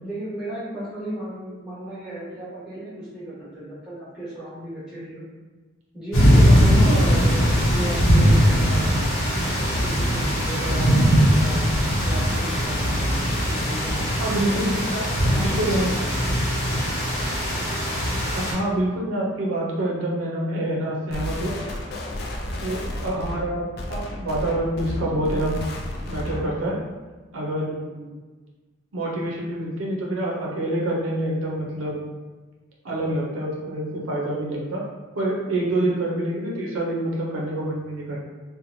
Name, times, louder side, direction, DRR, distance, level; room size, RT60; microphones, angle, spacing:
voice 1, 0.0-5.3 5.9-9.0 9.4-11.8 12.0-13.0 13.5-14.0 14.5-16.2 16.6-16.8 22.5-23.0 27.6-28.1 35.5-35.8, right 1 dB, 5° right, -12 dB, 1.2 m, -35 dB
sound 1, 6.1-18.5, equal, 75° left, 0.8 m, -20 dB
voice 2, 6.8-7.4 14.1-14.8 15.4-15.9 18.3-21.5 22.6-25.6 26.1-26.8 27.3-27.7 28.9-32.1 32.8-34.8 35.2-38.2, right 1 dB, 75° right, -3 dB, 0.6 m, -26 dB
sound 2, 21.1-26.6, left 1 dB, 50° left, 0.3 m, -32 dB
2.9 x 2.2 x 2.6 m, 1.3 s
head